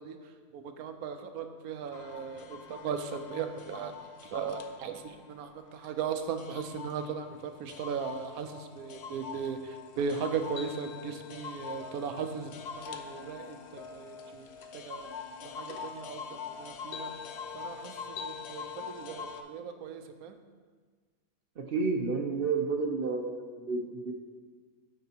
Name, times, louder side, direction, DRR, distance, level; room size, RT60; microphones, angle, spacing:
voice 1, 0.0-14.5 14.7-15.1 15.4-17.3 17.5-20.4, right 6 dB, 85° right, 7 dB, 1.1 m, -37 dB
sound 1, 1.9-19.4, left 6 dB, 65° left, 0.7 m, -44 dB
voice 2, 21.6-24.1, right 4 dB, 60° right, 3 dB, 0.6 m, -31 dB
13.5 x 4.6 x 2.8 m, 1.5 s
omnidirectional pair, 1.5 m